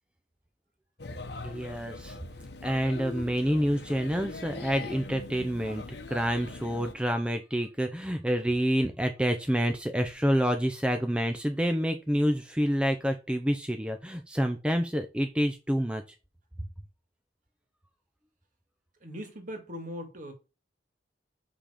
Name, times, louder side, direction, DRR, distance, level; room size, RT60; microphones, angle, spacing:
Male speech man speaking / Child speech kid speaking / Chatter, 1.0-6.9, left 3 dB, 65° left, 1.1 m, -41 dB
voice 1, 1.4-2.2 2.6-16.0, equal, 5° right, 0.7 m, -28 dB
voice 2, 19.0-20.3, equal, 50° right, 2.1 m, -40 dB
6.7 x 5.7 x 5.0 m
head